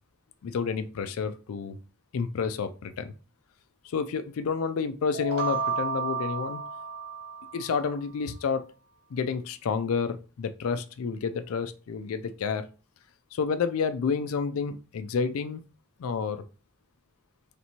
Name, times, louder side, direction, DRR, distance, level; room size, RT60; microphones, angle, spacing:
voice 1, 0.4-1.8 2.1-3.1 3.8-6.6 7.5-8.7 9.1-12.7 13.3-15.6 16.0-16.4, left 5 dB, 80° left, 11 dB, 0.4 m, -30 dB
sound 1, 5.1-7.9, right 5 dB, 55° right, 0.4 m, -32 dB
3.3 x 3.0 x 4.1 m, 0.34 s
head